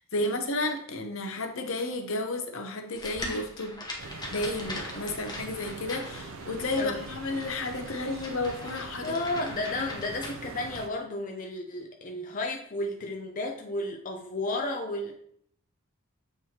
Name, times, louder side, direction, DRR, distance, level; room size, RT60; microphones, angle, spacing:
voice 1, 0.1-3.8 4.3-9.5 9.8-9.9, left 2 dB, 65° left, 5 dB, 0.8 m, -32 dB
sound 1, 2.9-10.8, left 2 dB, 20° left, 1.0 m, -41 dB
sound 2, 4.0-10.9, right 4 dB, 65° right, 0.5 m, -43 dB
voice 2, 9.0-15.2, left 2 dB, 40° left, 1 dB, 0.6 m, -33 dB
7.3 x 4.7 x 2.9 m, 0.66 s
head